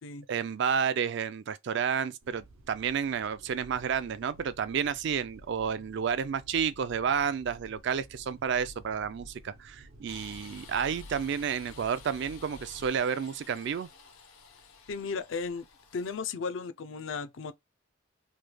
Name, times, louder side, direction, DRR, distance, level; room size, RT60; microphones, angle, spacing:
voice 1, 0.3-13.9, right 7 dB, 55° right, 0.3 m, -31 dB
sound 1, 2.2-12.9, equal, 90° right, 0.8 m, -52 dB
sound 2, 10.1-16.2, left 6 dB, 90° left, 0.8 m, -53 dB
voice 2, 14.9-15.7 15.9-17.5, left 5 dB, 60° left, 0.4 m, -35 dB
3.2 x 2.2 x 3.3 m
head